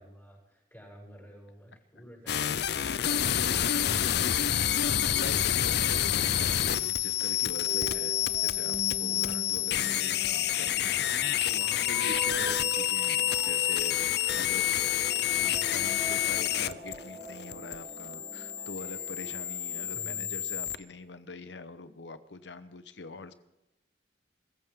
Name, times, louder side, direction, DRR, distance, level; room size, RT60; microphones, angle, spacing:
voice 1, 0.0-3.5 15.4-15.8 19.9-20.6, equal, 10° left, -4 dB, 7.5 m, -51 dB
sound 1, 2.3-20.8, left 11 dB, 60° left, 0.5 m, -28 dB
voice 2, 4.3-14.8 15.4-23.3, left 3 dB, 80° left, 12 dB, 1.0 m, -44 dB
sound 2, 7.6-20.4, right 1 dB, 10° right, 2.7 m, -42 dB
sound 3, 11.8-19.9, right 1 dB, 75° right, 6.0 m, -54 dB
22.0 x 14.5 x 3.7 m, 0.93 s
head